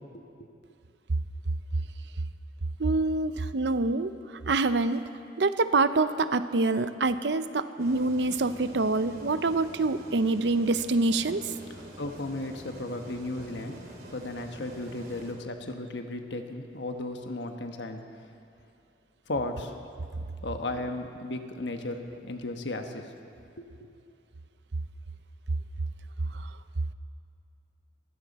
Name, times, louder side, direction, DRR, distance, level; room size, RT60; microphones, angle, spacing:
voice 1, 0.1-0.5 12.0-18.3 19.3-19.7 20.4-23.1 23.6-23.9, left 2 dB, 80° left, 5 dB, 1.3 m, -35 dB
voice 2, 2.8-4.1 4.5-5.0 5.4-11.5 26.3-26.5, right 3 dB, 70° right, 12 dB, 0.7 m, -26 dB
sound 1, 7.8-15.3, right 1 dB, 55° right, 3.1 m, -47 dB
21.5 x 15.5 x 4.2 m, 2.5 s
head